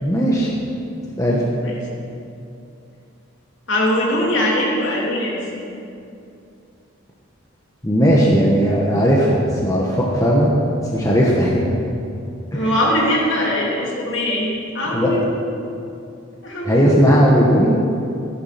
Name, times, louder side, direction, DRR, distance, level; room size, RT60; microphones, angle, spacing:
voice 1, 0.0-0.5 1.2-1.4 7.8-10.5 10.9-11.6 12.5-12.7 14.9-15.2 16.7-17.8, equal, 15° left, -4 dB, 1.4 m, -16 dB
voice 2, 3.7-5.4 12.5-14.5 14.7-15.4 16.4-17.2, left 1 dB, 60° left, -4 dB, 3.0 m, -21 dB
13.5 x 11.0 x 5.9 m, 2.6 s
head